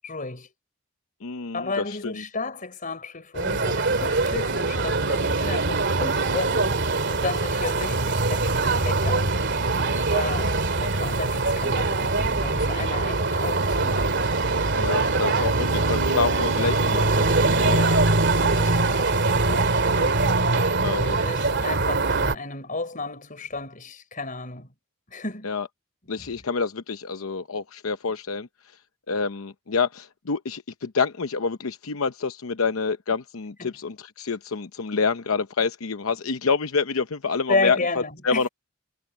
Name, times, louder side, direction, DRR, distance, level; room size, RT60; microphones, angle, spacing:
voice 1, 0.0-0.5 1.5-9.4 10.1-14.1 17.6-20.4 21.0-24.7 25.1-25.5 26.2-26.3 33.6-33.7 37.5-38.5, left 3 dB, 40° left, 5.0 m, -33 dB
voice 2, 1.2-2.2 14.7-17.8 20.5-21.2 25.4-25.7 26.1-28.5 29.1-38.5, left 5 dB, 85° left, 0.8 m, -27 dB
sound 1, 3.4-22.4, right 3 dB, 55° right, 2.6 m, -23 dB
head